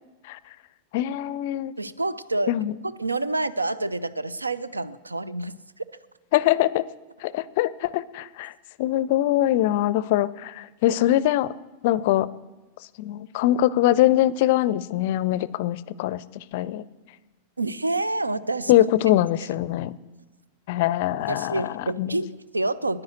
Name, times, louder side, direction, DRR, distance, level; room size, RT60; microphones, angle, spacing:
voice 1, 0.9-1.7 2.5-2.7 6.3-6.8 7.2-8.5 8.8-11.5 11.8-12.3 13.0-16.8 18.7-19.9 20.7-22.2, left 14 dB, 50° left, 19 dB, 0.4 m, -23 dB
voice 2, 1.8-2.5 3.0-5.6 17.6-18.7 21.3-23.0, right 2 dB, 80° right, 17 dB, 0.4 m, -28 dB
10.5 x 9.8 x 7.9 m, 1.2 s
figure-of-eight pair, 90°, 0 cm